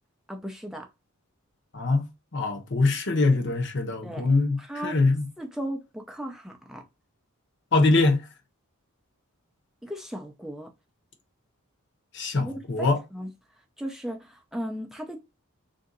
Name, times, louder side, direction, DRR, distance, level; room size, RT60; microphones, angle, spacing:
voice 1, 0.3-0.9 4.0-4.3 4.6-5.0 5.4-6.8 9.8-10.7 12.3-13.3 13.8-15.2, equal, ahead, 0.4 m, -36 dB
voice 2, 1.7-2.1 2.3-5.2 7.7-8.2 12.1-13.0, left 3 dB, 55° left, 0.9 m, -23 dB
3.7 x 2.6 x 3.8 m
head